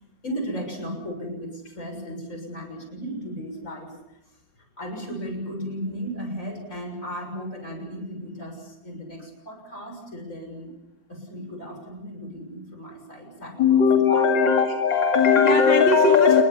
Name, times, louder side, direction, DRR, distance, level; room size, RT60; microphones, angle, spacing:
voice 1, 0.2-3.9 4.8-10.7 11.1-14.3, equal, 45° left, 4 dB, 7.2 m, -35 dB
voice 2, 13.6-16.4, left 5 dB, 85° left, 3 dB, 2.9 m, -18 dB
28.0 x 22.5 x 7.3 m, 0.92 s
omnidirectional pair, 2.0 m